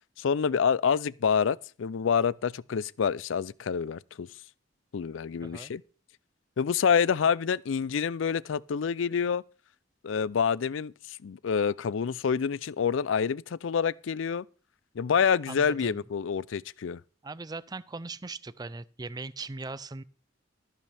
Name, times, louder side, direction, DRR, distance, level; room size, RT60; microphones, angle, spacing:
voice 1, 0.2-4.3 4.9-5.8 6.6-9.4 10.0-14.4 15.0-17.0, left 6 dB, 85° left, 0.4 m, -27 dB
voice 2, 5.4-5.7 15.5-16.0 17.2-20.0, right 3 dB, 20° right, 0.4 m, -39 dB
13.5 x 10.5 x 3.4 m
head